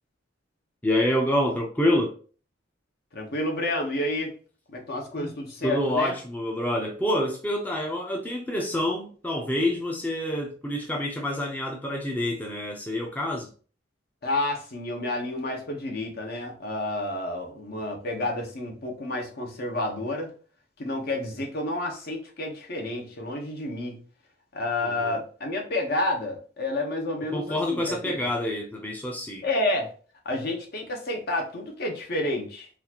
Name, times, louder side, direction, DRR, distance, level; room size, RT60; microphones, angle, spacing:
voice 1, 0.8-2.1 5.6-13.5 24.8-25.1 27.3-29.4, left 1 dB, 10° left, 0.5 m, -27 dB
voice 2, 3.1-4.3 4.7-6.1 14.2-20.3 20.8-24.0 24.5-28.2 29.4-29.9 30.2-32.7, left 1 dB, 55° left, 0.9 m, -30 dB
4.0 x 2.4 x 2.8 m
head